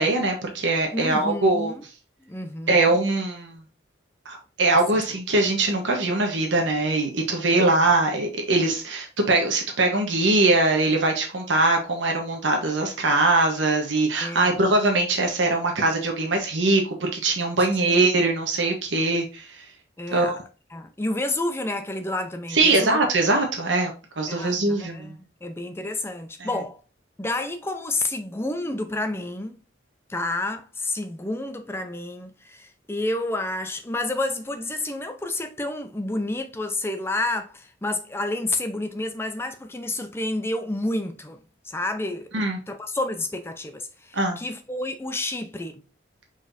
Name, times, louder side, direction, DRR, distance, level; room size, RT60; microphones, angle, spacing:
voice 1, 0.0-1.7 2.7-3.6 4.2-19.6 20.1-20.4 22.5-25.2 26.4-26.5 42.3-42.6 44.1-44.4, right 2 dB, 85° right, 1.1 m, -22 dB
voice 2, 0.9-1.8 2.2-3.0 4.9-5.0 7.5-7.9 14.2-14.7 17.8-18.0 20.0-20.4 20.7-23.0 24.3-26.8 27.2-29.6 30.1-41.4 41.6-45.8, left 2 dB, 15° left, 0.5 m, -30 dB
4.9 x 4.2 x 2.6 m
head